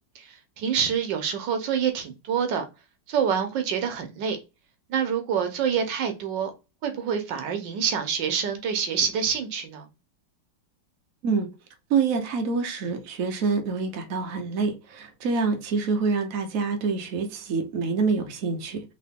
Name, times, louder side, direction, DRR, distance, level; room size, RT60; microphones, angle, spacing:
voice 1, 0.2-2.6 3.1-4.4 4.9-6.5 6.8-9.9, right 7 dB, 80° right, 1.5 m, -26 dB
voice 2, 11.9-18.8, right 4 dB, 55° right, 1.1 m, -26 dB
3.8 x 3.0 x 3.5 m
omnidirectional pair, 2.0 m